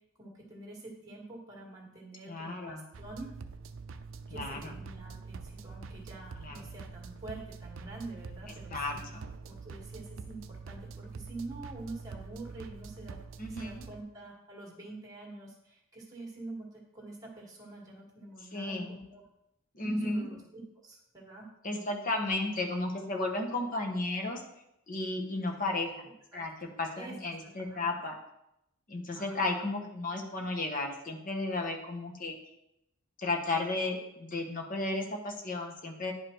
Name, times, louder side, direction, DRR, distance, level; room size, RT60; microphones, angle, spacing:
voice 1, 0.2-3.4 4.3-9.0 9.4-13.2 13.5-16.7 16.9-19.2 20.0-21.5 25.6-25.8 26.3-28.0 29.1-29.6, right 2 dB, 15° right, -2 dB, 1.7 m, -46 dB
voice 2, 2.3-2.8 4.3-4.7 6.4-6.7 8.7-9.2 13.4-13.9 18.5-19.0 19.7-20.3 21.6-24.4 24.9-26.1 26.3-28.2 28.9-32.4 33.2-36.1, left 2 dB, 40° left, 2 dB, 1.0 m, -34 dB
sound 1, 2.9-14.0, right 4 dB, 65° right, 0.4 m, -45 dB
10.5 x 4.9 x 3.0 m, 0.82 s
head